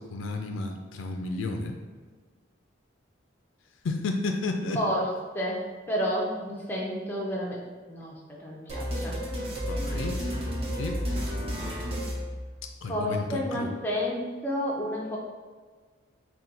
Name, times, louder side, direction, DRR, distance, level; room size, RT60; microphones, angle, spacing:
voice 1, 0.0-1.8 3.8-4.8 9.7-10.5 10.8-11.0 12.8-13.7, left 3 dB, 80° left, 4 dB, 0.4 m, -32 dB
voice 2, 4.8-5.1 5.3-9.2 12.9-15.2, equal, 10° left, -3 dB, 0.5 m, -31 dB
sound 1, 8.7-13.0, equal, 30° right, 0.7 m, -32 dB
4.2 x 2.2 x 3.8 m, 1.5 s
head